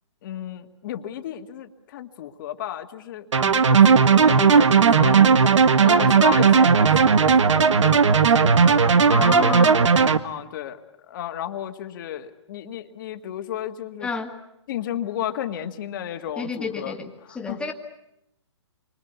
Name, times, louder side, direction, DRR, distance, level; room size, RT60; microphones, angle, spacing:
voice 1, 0.2-5.2 5.9-8.6 9.0-9.4 10.2-14.1 14.7-17.0 17.3-17.6, left 11 dB, 45° left, 7 dB, 1.9 m, -33 dB
sound 1, 3.3-10.2, right 5 dB, 80° right, 1.6 m, -16 dB
voice 2, 5.8-6.2 9.1-9.9 14.0-14.3 16.4-17.7, left 4 dB, 5° left, 3 dB, 2.0 m, -30 dB
28.5 x 24.5 x 8.3 m, 0.83 s
hypercardioid pair, 150°, 16 cm